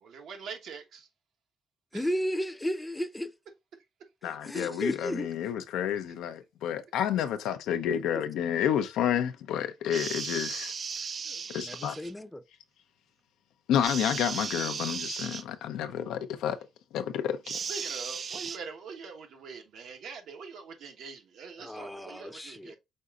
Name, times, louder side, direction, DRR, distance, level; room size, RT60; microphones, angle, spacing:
voice 1, 0.0-1.1 1.9-2.1 9.0-9.3 11.2-11.5 17.7-22.7, right 5 dB, 80° right, 1.1 m, -44 dB
voice 2, 1.9-3.3 4.2-5.3 8.1-8.2 11.6-12.4 21.6-22.7, equal, 10° left, 0.6 m, -34 dB
voice 3, 4.2-10.7 11.5-12.0 13.7-16.6 16.9-17.6, left 9 dB, 90° left, 0.6 m, -30 dB
sound 1, 9.9-12.1 13.8-15.4 17.4-18.6, right 6 dB, 50° right, 0.4 m, -36 dB
5.4 x 3.8 x 2.4 m
cardioid pair, 90°, 0 cm